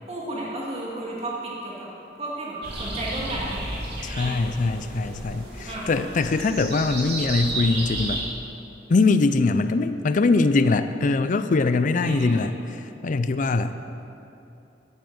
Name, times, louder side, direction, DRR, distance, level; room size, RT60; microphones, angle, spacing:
voice 1, 0.1-1.9 2.2-3.6 4.2-4.4 5.7-5.9 12.0-12.4, right 1 dB, 35° right, -4 dB, 1.9 m, -33 dB
sound 1, 2.6-8.2, right 2 dB, 65° right, 2.4 m, -32 dB
voice 2, 4.0-8.2 8.9-13.7, left 3 dB, 45° left, 10 dB, 0.4 m, -22 dB
9.1 x 8.6 x 7.1 m, 2.8 s
head